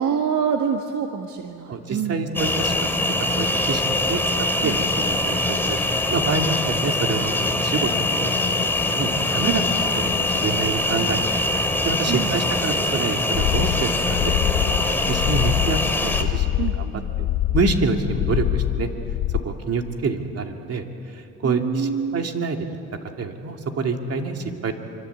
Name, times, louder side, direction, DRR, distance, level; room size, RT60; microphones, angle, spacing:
voice 1, 0.0-2.3 4.6-4.8 9.4-9.6 12.1-12.4 16.6-17.1 21.4-22.2, right 7 dB, 70° right, 4 dB, 1.6 m, -26 dB
voice 2, 1.7-2.7 3.2-4.9 5.2-5.8 6.1-8.6 8.9-9.6 10.3-11.4 11.8-14.4 14.9-16.9 17.2-17.3 17.5-18.9 19.4-20.8 21.1-22.7 23.2-24.7, right 4 dB, 50° right, 3 dB, 2.8 m, -27 dB
sound 1, 2.3-16.2, left 2 dB, 5° left, 2.8 m, -23 dB
sound 2, 13.3-19.4, left 13 dB, 80° left, 0.8 m, -24 dB
26.5 x 25.5 x 8.4 m, 2.6 s
cardioid pair, 90°, 30 cm